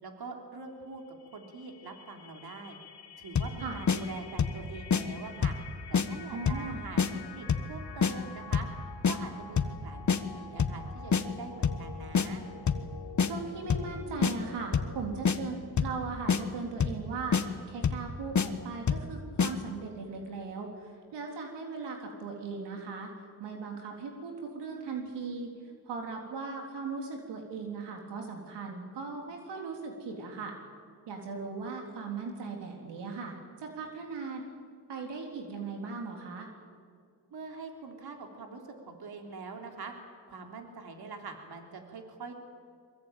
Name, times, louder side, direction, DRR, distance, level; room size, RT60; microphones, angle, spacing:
voice 1, 0.0-1.0 1.3-2.8 3.2-5.6 5.9-8.7 9.0-12.4 37.3-39.9 40.3-42.3, right 4 dB, 65° right, 3 dB, 3.6 m, -44 dB
sound 1, 1.0-15.2, left 6 dB, 65° left, 2.4 m, -48 dB
sound 2, 3.3-3.6 3.9-4.0 4.4-4.6 4.9-5.0 5.4-5.6 5.9-6.1 6.5-6.7 7.0-7.1 7.5-7.7 8.0-8.1 8.5-8.7 9.0-9.2 9.6-9.8 10.1-10.2 10.6-10.8 11.1-11.2 11.6-11.8 12.1-12.3 12.7-12.9 13.2-13.3 13.7-13.9 14.2-14.3 14.7-15.0 15.2-15.4 15.8-16.0 16.3-16.4 16.8-17.0 17.3-17.4 17.8-18.1 18.3-18.5 18.9-19.1 19.4-19.5, left 6 dB, 45° left, 1.5 m, -26 dB
voice 2, 6.3-6.8 13.2-25.5 25.9-30.6 31.1-34.4 34.9-36.5, right 4 dB, 90° right, 2 dB, 3.6 m, -38 dB
23.5 x 22.5 x 9.1 m, 2.1 s
cardioid pair, 75°, 41 cm